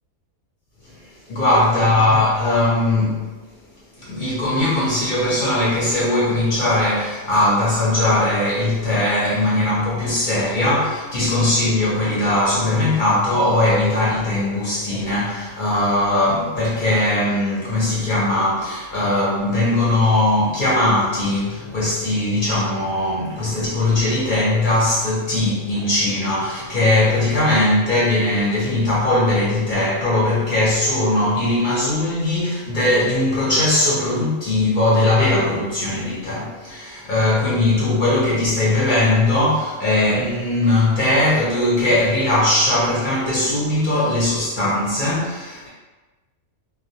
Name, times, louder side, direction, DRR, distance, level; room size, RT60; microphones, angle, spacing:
voice 1, 1.3-3.2 4.0-45.7, left 2 dB, 55° left, -8 dB, 0.5 m, -19 dB
2.3 x 2.1 x 2.7 m, 1.2 s
omnidirectional pair, 1.5 m